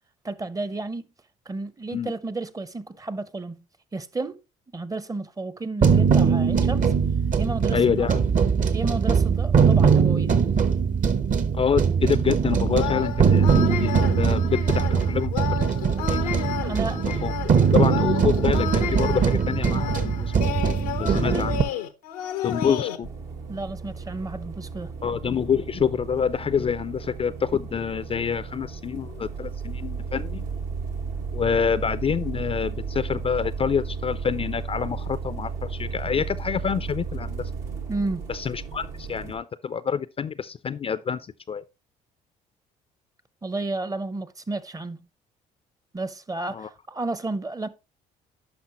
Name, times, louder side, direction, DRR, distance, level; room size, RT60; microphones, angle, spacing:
voice 1, 0.2-1.1 1.5-3.6 3.9-4.4 4.7-6.9 7.4-8.1 8.7-10.4 16.6-17.0 21.0-21.5 23.5-24.9 37.9-38.2 43.4-45.0 45.9-47.7, right 2 dB, 20° right, 0.7 m, -32 dB
sound 1, 5.8-21.6, right 6 dB, 45° right, 0.9 m, -21 dB
voice 2, 7.7-8.2 11.5-15.7 16.1-16.2 17.2-20.3 21.0-21.6 22.4-23.1 25.0-30.4 31.3-37.5 38.3-41.6 46.5-46.7, left 7 dB, 30° left, 0.4 m, -27 dB
sound 2, 12.7-23.0, left 10 dB, 90° left, 0.7 m, -32 dB
sound 3, 23.0-39.4, right 5 dB, 75° right, 1.7 m, -34 dB
10.5 x 5.5 x 3.0 m
hypercardioid pair, 60°, 19 cm